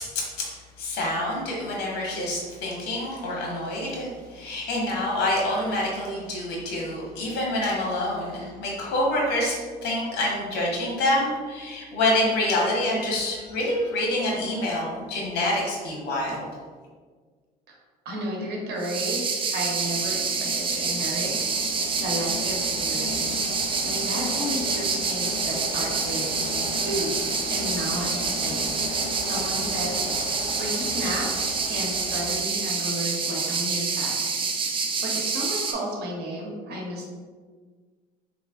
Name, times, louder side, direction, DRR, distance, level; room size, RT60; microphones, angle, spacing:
voice 1, 0.1-0.5 0.8-9.6 9.8-16.4, left 1 dB, 80° left, -3 dB, 1.1 m, -27 dB
voice 2, 18.0-19.2 19.5-21.3 21.8-26.3 26.6-27.2 27.5-34.1 34.4-34.7 35.0-37.1, right 1 dB, 75° right, -2 dB, 1.0 m, -33 dB
sound 1, 18.8-35.7, right 5 dB, 30° right, 0.4 m, -27 dB
sound 2, 19.7-32.4, left 4 dB, 50° left, 0.5 m, -36 dB
3.7 x 3.1 x 2.4 m, 1.5 s
cardioid pair, 110°, 17 cm